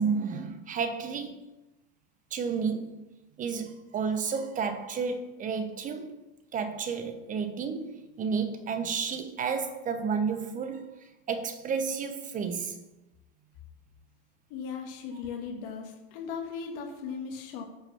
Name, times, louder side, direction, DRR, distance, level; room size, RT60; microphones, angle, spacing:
voice 1, 0.0-1.4 2.3-2.9 3.4-6.1 6.5-10.9 11.3-12.8 15.1-15.2, right 5 dB, 25° right, 0.8 m, -31 dB
voice 2, 14.5-17.6, left 6 dB, 55° left, 1.6 m, -37 dB
9.3 x 5.7 x 7.1 m
supercardioid pair, 135°, 30 cm